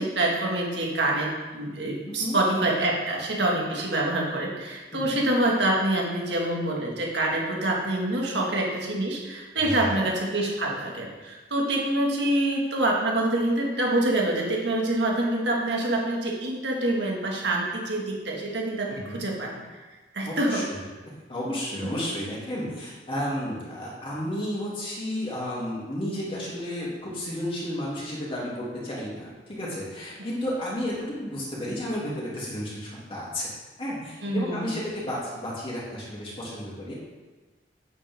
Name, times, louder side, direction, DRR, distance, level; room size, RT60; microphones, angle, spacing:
voice 1, 0.0-19.8 20.1-20.6 21.8-21.9 34.2-34.7, right 1 dB, 70° right, -1 dB, 2.0 m, -26 dB
voice 2, 2.0-2.4 4.9-5.2 9.6-10.1 18.9-19.2 20.3-20.8 21.3-33.5 33.8-36.9, left 1 dB, 30° left, -6 dB, 2.8 m, -32 dB
8.7 x 8.3 x 3.7 m, 1.3 s
head